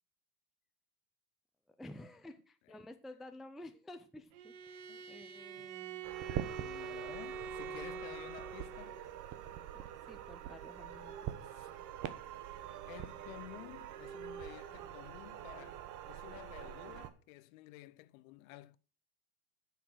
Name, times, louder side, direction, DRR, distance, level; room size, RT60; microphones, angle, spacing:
voice 1, 1.7-6.4 9.7-11.1, left 1 dB, ahead, 0.4 m, -52 dB
Bowed string instrument, 4.3-9.1, right 6 dB, 60° right, 1.4 m, -45 dB
voice 2, 4.9-5.2 5.5-5.7 6.5-9.0 11.4-11.8 12.7-18.8, left 17 dB, 55° left, 0.8 m, -53 dB
sound 1, 6.0-17.1, right 11 dB, 40° right, 1.2 m, -45 dB
9.0 x 7.1 x 6.3 m
supercardioid pair, 125°, 49 cm